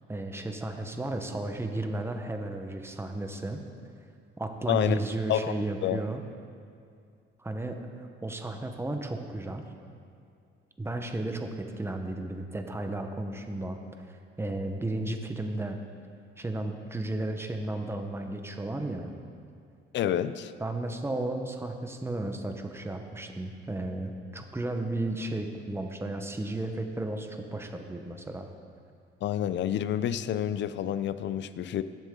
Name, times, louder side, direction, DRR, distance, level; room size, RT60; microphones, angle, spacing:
voice 1, 0.1-3.6 4.4-6.2 7.4-7.8 8.2-9.7 10.8-15.8 16.4-19.1 20.6-28.5, right 2 dB, 10° right, 5 dB, 1.0 m, -34 dB
voice 2, 4.7-5.0 5.3-5.5 5.8-6.0 19.9-20.5 29.2-31.8, left 10 dB, 60° left, 14 dB, 0.5 m, -28 dB
18.5 x 7.5 x 3.8 m, 2.4 s
cardioid pair, 110°, 21 cm